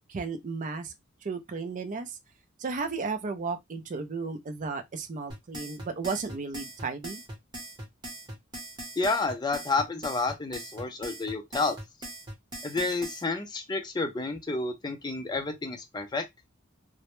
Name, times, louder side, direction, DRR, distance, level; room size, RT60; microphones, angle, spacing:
voice 1, 0.1-0.9 1.2-2.2 2.6-7.2, right 4 dB, 40° right, 0.4 m, -34 dB
sound 1, 5.3-13.2, right 1 dB, 20° right, 0.8 m, -40 dB
voice 2, 9.0-11.8 12.6-16.2, left 3 dB, 20° left, 0.4 m, -30 dB
2.1 x 2.0 x 3.0 m
head